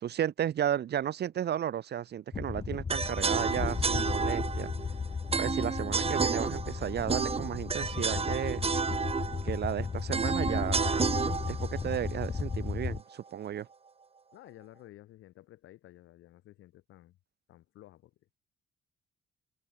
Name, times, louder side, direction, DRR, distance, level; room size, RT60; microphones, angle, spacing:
voice 1, 0.0-4.7 5.3-8.6 9.4-11.1 11.5-13.7, right 10 dB, 55° right, 0.9 m, -33 dB
sound 1, 2.3-13.0, left 5 dB, 25° left, 0.7 m, -35 dB
sound 2, 2.9-13.0, right 5 dB, 30° right, 1.2 m, -32 dB
voice 2, 14.3-17.2 17.5-18.1, left 15 dB, 85° left, 7.9 m, -53 dB
cardioid pair, 90°, 20 cm